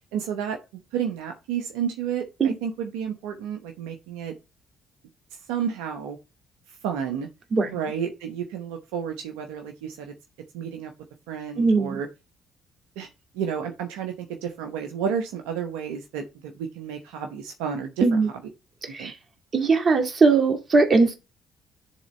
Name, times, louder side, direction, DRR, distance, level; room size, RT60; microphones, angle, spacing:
voice 1, 0.1-4.3 5.5-6.2 6.7-7.3 7.7-10.1 10.5-10.9 11.3-12.1 13.0-13.1 13.3-18.2 18.8-19.1, right 7 dB, 80° right, 0.9 m, -31 dB
voice 2, 11.6-12.0 18.0-18.3 18.9-19.1 19.5-21.1, right 4 dB, 45° right, 2.3 m, -20 dB
10.5 x 3.8 x 4.2 m
hypercardioid pair, 50°, 0 cm